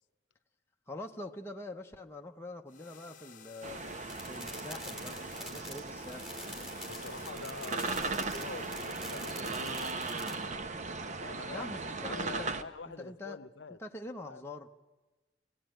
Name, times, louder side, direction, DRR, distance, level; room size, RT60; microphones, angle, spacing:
voice 1, 0.9-3.8 4.3-6.3 11.5-12.5 12.9-13.4 13.8-14.7, left 2 dB, 15° left, 2 dB, 0.8 m, -44 dB
sound 1, 2.7-9.1, left 7 dB, 45° left, 0.9 m, -54 dB
sound 2, 3.6-12.6, right 3 dB, 45° right, 0.9 m, -38 dB
sound 3, 4.1-10.4, left 1 dB, 5° right, 3.4 m, -46 dB
voice 2, 6.5-10.0 11.2-11.7 12.1-13.8 14.2-14.4, left 4 dB, 90° left, 13 dB, 0.8 m, -46 dB
24.5 x 17.5 x 9.0 m, 1.2 s
head